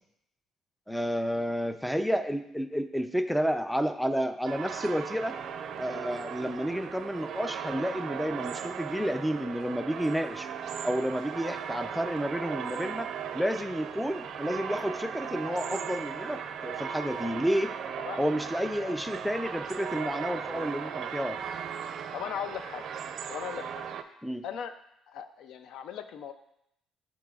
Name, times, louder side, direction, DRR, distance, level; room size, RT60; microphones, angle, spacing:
voice 1, 0.9-5.4 5.8-10.5 10.8-17.7 18.2-21.4 24.2-24.4, equal, ahead, 9 dB, 0.4 m, -30 dB
sound 1, 4.5-24.0, right 7 dB, 60° right, 0.4 m, -37 dB
voice 2, 22.1-22.8 23.3-23.8 24.4-24.7 25.1-26.3, left 8 dB, 75° left, 9 dB, 0.4 m, -38 dB
11.5 x 4.0 x 2.4 m, 0.76 s
cardioid pair, 105°, 0 cm